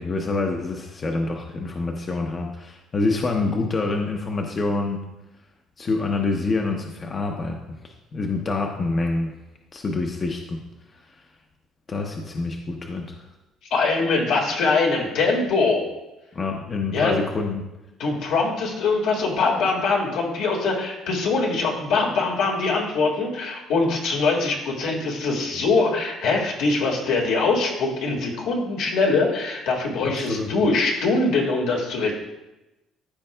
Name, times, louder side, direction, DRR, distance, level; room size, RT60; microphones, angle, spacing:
voice 1, 0.0-5.0 5.8-9.3 9.7-10.6 11.0-11.1 11.9-13.3 16.3-17.6 30.0-30.5, left 3 dB, 30° left, 2 dB, 0.7 m, -26 dB
voice 2, 13.7-15.9 16.9-17.1 18.0-32.1, left 3 dB, 75° left, -1 dB, 1.7 m, -22 dB
13.0 x 4.7 x 2.2 m, 0.98 s
cardioid pair, 130°, 0 cm